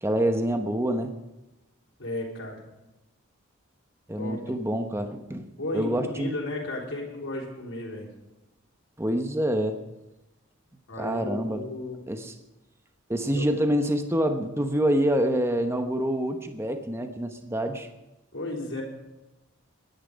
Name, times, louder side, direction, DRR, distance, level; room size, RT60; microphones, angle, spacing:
voice 1, 0.0-1.1 4.1-5.5 5.7-6.3 9.0-9.8 11.0-11.6 12.1-12.3 13.1-17.9, equal, 10° right, 6 dB, 1.0 m, -26 dB
voice 2, 2.0-2.6 4.2-4.4 5.6-8.1 10.9-12.1 13.3-13.5 18.3-18.8, left 2 dB, 60° left, -2 dB, 3.8 m, -34 dB
21.0 x 10.5 x 5.2 m, 0.98 s
head